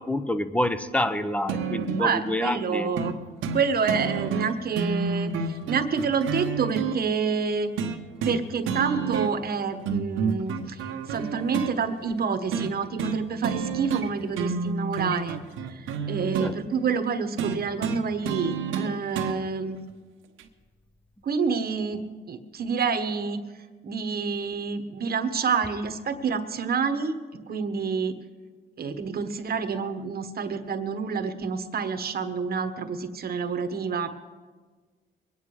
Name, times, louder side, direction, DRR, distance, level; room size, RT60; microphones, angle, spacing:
voice 1, 0.0-2.9 16.4-16.5, left 1 dB, 5° left, 12 dB, 0.9 m, -27 dB
sound 1, 1.5-2.1 3.0-3.1 3.4-3.6 3.9-7.0 7.8-8.4 8.7-9.5 9.9-11.7 12.5-12.7 13.0-13.2 13.4-14.1 14.3-16.5 17.4-19.4 20.4-20.5, right 6 dB, 85° right, 1.2 m, -29 dB
voice 2, 2.0-3.2 3.5-7.7 8.2-19.8 21.2-23.4 23.8-28.1 28.8-34.1, right 5 dB, 50° right, 8 dB, 1.3 m, -28 dB
22.5 x 9.6 x 4.8 m, 1.4 s
cardioid pair, 90°, 20 cm